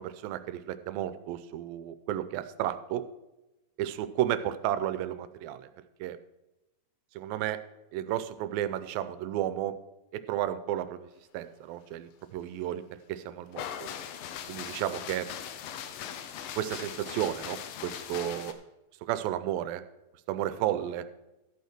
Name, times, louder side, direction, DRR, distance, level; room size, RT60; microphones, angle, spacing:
voice 1, 0.0-3.1 3.8-5.7 6.0-6.2 7.2-7.6 7.9-9.8 10.1-11.1 11.3-12.8 13.1-13.9 14.5-15.3 16.6-18.6 19.0-19.8 20.3-21.1, right 12 dB, 85° right, 12 dB, 2.4 m, -32 dB
sound 1, 13.5-18.5, left 9 dB, 80° left, 2.4 m, -40 dB
13.5 x 5.7 x 5.9 m, 1.0 s
omnidirectional pair, 4.1 m